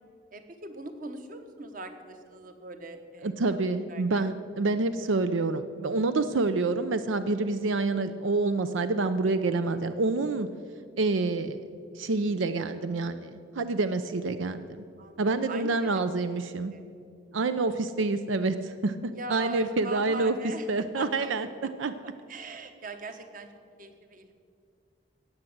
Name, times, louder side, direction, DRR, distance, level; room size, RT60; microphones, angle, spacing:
voice 1, 0.3-4.3 4.6-4.8 15.0-16.1 16.7-16.8 19.1-23.5 23.8-24.3, right 2 dB, 45° right, 7 dB, 1.1 m, -41 dB
voice 2, 3.2-10.5 11.0-11.6 11.9-14.8 15.2-16.7 17.3-19.0 19.3-20.3 20.7-21.5 21.8-21.9, right 3 dB, 90° right, 11 dB, 0.6 m, -27 dB
17.5 x 7.2 x 7.9 m, 2.3 s
head